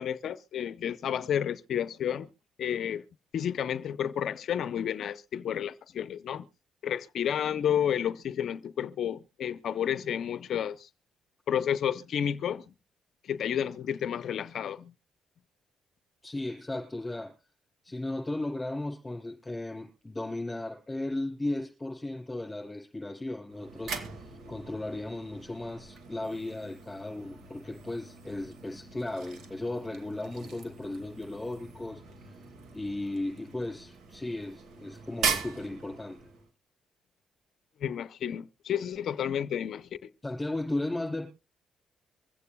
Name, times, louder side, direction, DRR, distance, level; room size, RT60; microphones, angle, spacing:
voice 1, 0.0-2.3 2.6-3.0 3.3-6.4 6.8-10.9 11.5-12.6 13.2-14.9 37.8-40.1, left 9 dB, 65° left, 0.6 m, -31 dB
voice 2, 16.2-17.3 17.8-32.4 32.7-36.2 40.2-41.3, left 2 dB, 15° left, 5.8 m, -36 dB
sound 1, 23.5-36.5, right 5 dB, 70° right, 1.9 m, -40 dB
24.5 x 8.4 x 2.2 m
cardioid pair, 90°, 0 cm